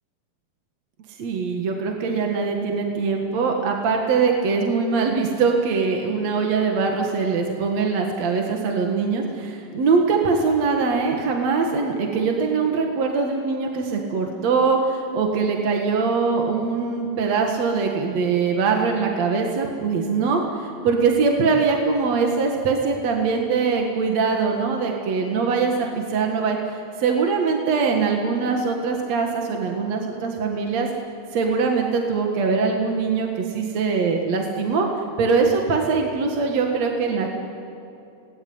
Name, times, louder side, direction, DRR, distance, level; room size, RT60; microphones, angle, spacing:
voice 1, 1.2-30.9 31.3-37.3, right 4 dB, 55° right, 2 dB, 2.6 m, -22 dB
28.5 x 20.0 x 9.6 m, 2.8 s
omnidirectional pair, 4.2 m